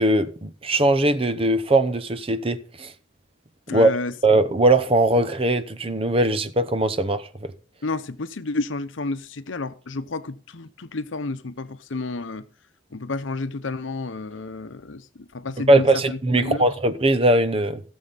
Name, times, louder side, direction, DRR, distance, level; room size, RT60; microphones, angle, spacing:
voice 1, 0.0-2.9 3.7-3.9 4.2-7.5 15.7-17.8, right 1 dB, 30° right, 0.8 m, -20 dB
voice 2, 3.7-4.1 7.8-12.5 12.9-16.6, left 3 dB, 80° left, 0.8 m, -31 dB
16.5 x 7.1 x 4.1 m
head